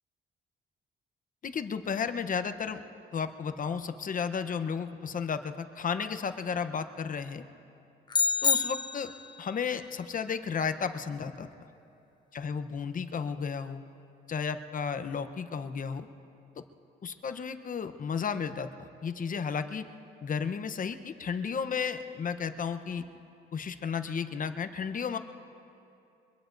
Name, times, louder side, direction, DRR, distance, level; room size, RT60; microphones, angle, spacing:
voice 1, 1.4-2.8 3.1-7.4 8.4-9.1 9.4-11.5 12.3-13.9 14.3-16.1 16.6-16.7 17.0-19.9 20.2-23.0 23.5-25.2, left 6 dB, 45° left, 10 dB, 0.9 m, -33 dB
sound 1, 8.1-9.4, left 5 dB, 20° left, 0.5 m, -27 dB
24.0 x 22.0 x 2.6 m, 2.7 s
cardioid pair, 90°, 20 cm